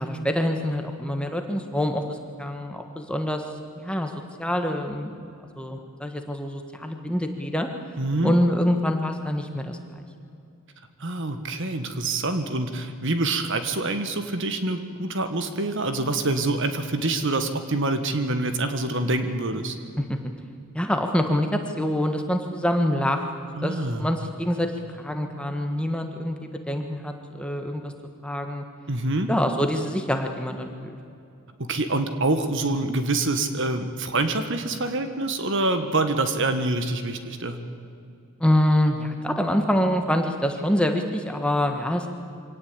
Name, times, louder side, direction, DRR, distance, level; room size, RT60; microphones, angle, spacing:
voice 1, 0.0-3.4 3.8-4.1 4.4-5.3 5.6-7.7 8.2-9.8 20.1-20.2 20.7-23.2 23.6-27.9 28.2-28.6 29.3-30.9 38.4-42.1, left 1 dB, 5° left, 4 dB, 1.5 m, -25 dB
voice 2, 8.0-8.3 11.0-19.8 23.6-24.1 28.9-29.3 31.6-37.6, right 2 dB, 55° right, 8 dB, 1.6 m, -26 dB
24.0 x 17.5 x 8.7 m, 2.5 s
head